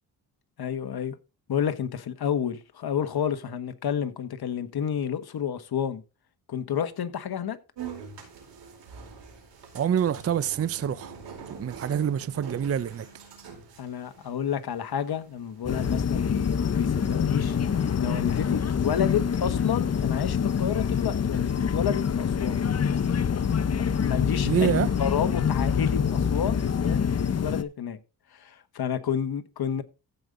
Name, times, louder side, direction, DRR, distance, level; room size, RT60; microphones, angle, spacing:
voice 1, 0.6-1.1 1.5-6.0 6.5-7.6 13.8-17.6 18.0-22.6 23.4-24.7 25.0-27.0 27.4-28.0 28.3-29.8, left 8 dB, 60° left, 1.4 m, -30 dB
sound 1, 7.8-18.1, right 6 dB, 80° right, 4.5 m, -45 dB
voice 2, 9.7-11.2 11.6-13.1 24.4-24.9, right 9 dB, 35° right, 0.5 m, -26 dB
sound 2, 15.6-27.6, left 7 dB, 35° left, 0.8 m, -26 dB
15.0 x 5.3 x 3.8 m
cardioid pair, 90°, 42 cm